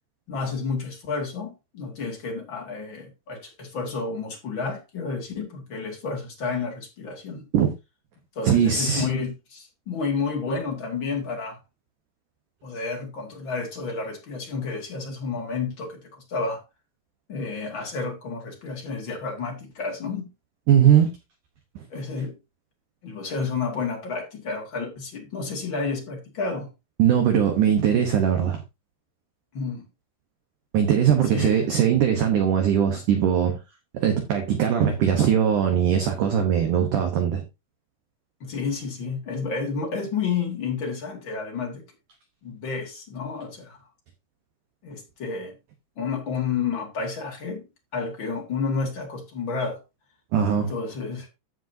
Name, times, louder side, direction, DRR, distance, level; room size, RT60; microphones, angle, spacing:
voice 1, 0.3-7.4 8.3-11.6 12.6-16.6 17.3-20.3 21.9-22.3 23.0-26.7 29.5-29.8 31.3-31.6 38.4-41.8 42.4-43.8 44.8-45.5 46.0-47.7 47.9-49.8 50.7-51.3, left 4 dB, 45° left, 1.6 m, -30 dB
voice 2, 8.4-9.1 20.7-21.1 27.0-28.6 30.7-33.6 33.9-37.4 50.3-50.7, right 8 dB, 70° right, 2.1 m, -20 dB
15.0 x 5.3 x 2.7 m
omnidirectional pair, 4.8 m